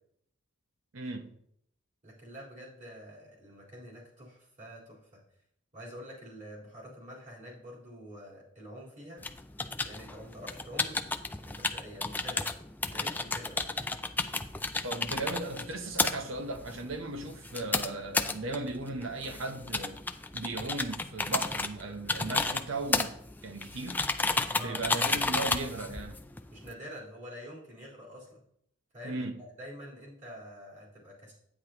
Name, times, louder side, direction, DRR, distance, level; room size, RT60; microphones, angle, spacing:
voice 1, 0.9-1.3 14.8-20.0 20.3-24.0 24.5-26.2 29.0-29.4, right 2 dB, 65° right, 0.8 m, -37 dB
voice 2, 2.0-5.2 5.7-9.3 9.8-11.0 11.4-12.5 12.9-13.6 24.5-24.8 26.5-28.4 28.9-31.3, equal, 35° right, 4.0 m, -47 dB
sound 1, 9.2-26.7, left 3 dB, 10° left, 0.3 m, -33 dB
10.0 x 9.2 x 2.9 m
head